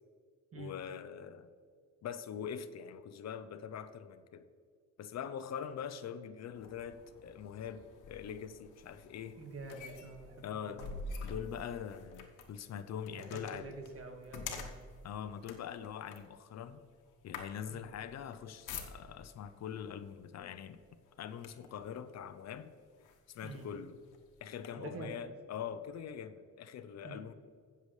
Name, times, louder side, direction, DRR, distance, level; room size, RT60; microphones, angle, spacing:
voice 1, 0.5-1.5 2.0-4.5 5.0-9.4 10.4-10.9 11.2-13.7 15.0-16.8 17.2-20.8 21.2-22.7 23.3-24.0 24.4-27.3, left 8 dB, 60° left, 12 dB, 0.7 m, -43 dB
sound 1, 6.5-19.4 20.2-20.4 20.8-21.8 22.5-22.6 23.0-24.7, left 4 dB, 90° left, 1.2 m, -48 dB
voice 2, 9.4-11.0 13.1-14.7 17.7-17.9 23.4-23.7 24.8-25.2 27.0-27.2, right 3 dB, 50° right, 5 dB, 1.7 m, -47 dB
16.0 x 6.9 x 3.2 m, 2.1 s
cardioid pair, 90°, 30 cm